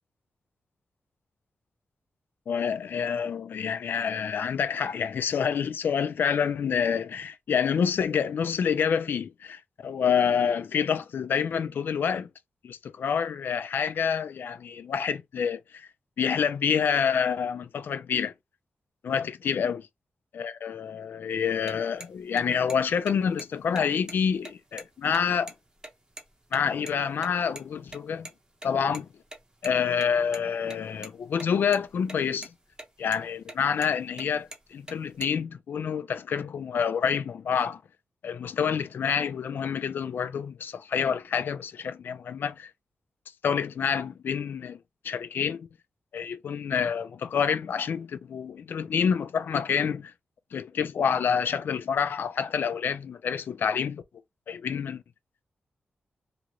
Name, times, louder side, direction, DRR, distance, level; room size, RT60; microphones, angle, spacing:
voice 1, 2.5-12.3 12.6-15.9 16.2-18.3 19.0-19.8 20.3-25.5 26.5-28.3 28.6-29.1 29.6-32.5 33.0-37.8 38.2-42.7 43.4-44.8 45.0-45.7 46.1-50.1 50.5-54.0 54.5-55.0, left 7 dB, 70° left, 0.3 m, -27 dB
sound 1, 21.5-26.6 26.9-27.0 27.2-27.3 27.6-27.7 27.9-28.0 28.2-28.3 28.6-29.7 30.0-30.4 30.7-31.5 31.7-32.2 32.4-32.9 33.1-33.2 33.5-33.9 34.2-35.4, right 1 dB, 20° right, 0.8 m, -42 dB
2.8 x 2.5 x 2.9 m
wide cardioid pair, 105°, 4 cm